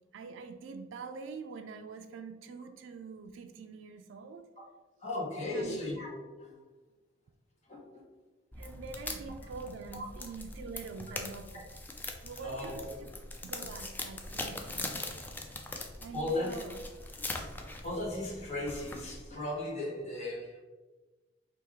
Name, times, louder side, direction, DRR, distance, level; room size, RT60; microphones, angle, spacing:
voice 1, 0.1-4.5 5.4-5.8 8.6-11.6 12.2-13.1 13.4-15.0 16.0-16.8, right 4 dB, 75° right, 7 dB, 0.3 m, -45 dB
voice 2, 5.0-6.6 7.6-8.0 9.0-9.1 12.1-13.0 16.1-16.5 17.3-20.6, left 2 dB, 35° left, -5 dB, 1.1 m, -37 dB
sound 1, 8.5-19.3, left 2 dB, 10° left, 0.3 m, -42 dB
4.6 x 2.7 x 3.5 m, 1.2 s
head